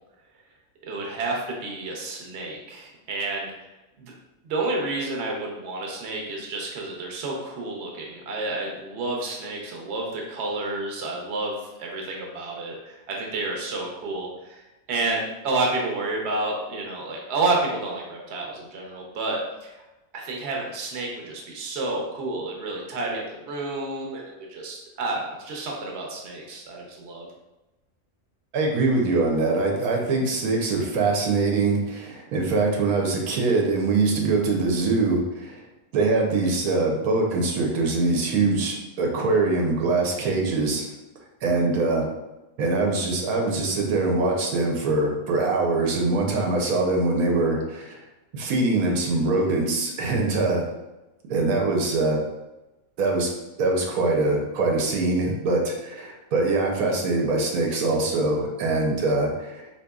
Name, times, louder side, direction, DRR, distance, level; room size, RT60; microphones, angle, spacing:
voice 1, 0.8-3.5 4.0-4.1 4.4-14.6 14.9-19.7 20.1-27.3, right 2 dB, 55° right, -1 dB, 0.9 m, -30 dB
voice 2, 28.5-35.6 35.9-40.8 41.4-42.1 42.6-48.0 48.3-50.6 51.3-52.2 53.0-53.3 53.6-59.7, right 3 dB, 85° right, 0 dB, 1.1 m, -23 dB
4.0 x 2.9 x 2.3 m, 1.0 s
omnidirectional pair, 1.5 m